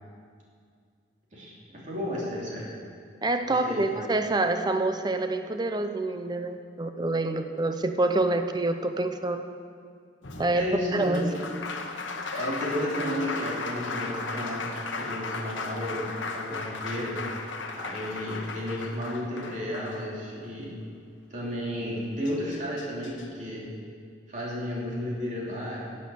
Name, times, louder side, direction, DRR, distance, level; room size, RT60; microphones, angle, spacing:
voice 1, 1.3-2.7 3.5-3.9 10.5-11.4 12.3-14.6 14.9-17.2 17.8-20.7 21.3-23.7 24.3-25.8, equal, 40° right, -5 dB, 2.9 m, -33 dB
voice 2, 3.2-9.4 10.4-10.6 10.9-11.3, right 2 dB, 20° right, 8 dB, 0.6 m, -27 dB
Applause, 10.2-20.5 21.9-22.0 22.3-23.3, left 3 dB, 80° left, 1.0 m, -36 dB
10.5 x 8.6 x 7.0 m, 2.2 s
head